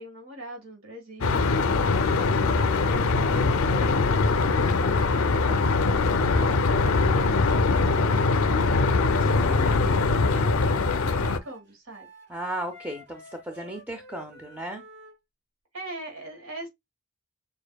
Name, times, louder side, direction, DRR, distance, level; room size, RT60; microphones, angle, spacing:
voice 1, 0.0-1.5 2.1-5.7 6.4-12.1 15.7-16.7, equal, 75° right, 1.6 m, -42 dB
sound 1, 1.2-11.4, left 3 dB, 90° left, 0.5 m, -22 dB
Wind instrument woodwind instrument, 8.7-15.1, right 2 dB, 60° right, 3.2 m, -49 dB
voice 2, 9.4-10.1 12.3-14.8, right 1 dB, 10° right, 0.4 m, -36 dB
6.5 x 2.6 x 2.3 m
head